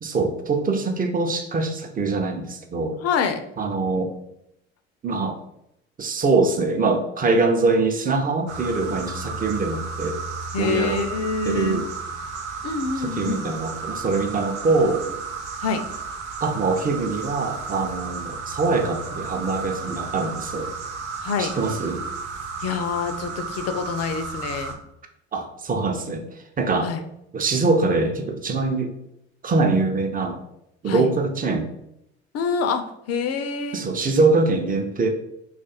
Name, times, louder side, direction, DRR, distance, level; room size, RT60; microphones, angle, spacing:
voice 1, 0.0-3.0 3.6-4.1 5.0-5.4 6.0-10.2 10.6-11.0 11.4-11.8 13.0-15.2 16.4-20.7 21.4-22.0 25.3-26.3 26.6-26.9 27.3-28.9 29.4-30.4 30.8-31.7 33.7-35.1, right 3 dB, 25° right, 5 dB, 0.6 m, -23 dB
voice 2, 3.0-3.4 10.5-11.8 12.6-13.5 15.6-15.8 21.2-21.5 22.6-24.8 26.8-27.0 30.9-31.1 32.3-33.8, left 5 dB, 45° left, 8 dB, 0.6 m, -26 dB
sound 1, 8.5-24.7, right 4 dB, 75° right, 0.7 m, -33 dB
3.0 x 2.4 x 4.2 m, 0.80 s
hypercardioid pair, 55°, 35 cm